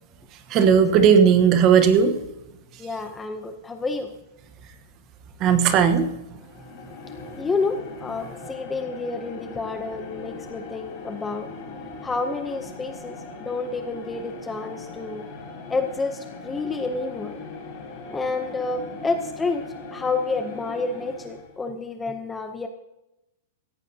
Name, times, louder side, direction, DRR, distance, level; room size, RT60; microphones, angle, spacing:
voice 1, 0.5-2.2 5.4-6.2, right 7 dB, 25° right, 9 dB, 1.1 m, -16 dB
voice 2, 2.8-4.1 7.4-11.5 12.0-15.2 15.7-17.4 18.1-19.6 19.9-22.7, left 3 dB, 10° left, 6 dB, 0.6 m, -29 dB
sound 1, 6.3-21.6, left 3 dB, 25° left, 5.4 m, -40 dB
17.5 x 14.5 x 2.8 m, 0.91 s
supercardioid pair, 175°, 0 cm